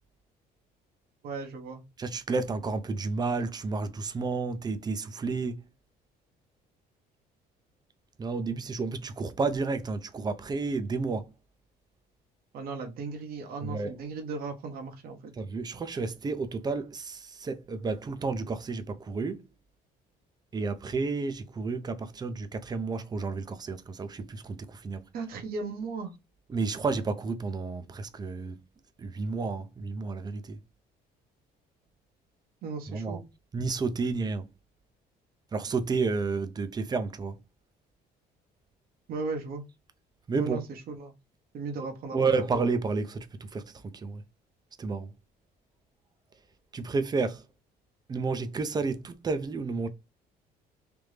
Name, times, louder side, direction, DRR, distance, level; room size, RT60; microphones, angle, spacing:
voice 1, 1.2-1.8 12.5-15.3 25.1-26.1 32.6-33.2 39.1-39.6 40.4-41.1 41.5-42.5, right 4 dB, 65° right, 1.0 m, -36 dB
voice 2, 2.0-5.6 8.2-11.3 13.6-13.9 15.3-19.5 20.5-25.0 26.5-28.6 29.0-30.6 32.9-33.2 33.5-34.5 35.5-37.4 40.3-40.6 42.1-44.2 44.8-45.1 46.7-47.4 48.1-49.9, right 4 dB, 25° right, 0.6 m, -31 dB
3.4 x 2.6 x 3.2 m
cardioid pair, 110°, 17 cm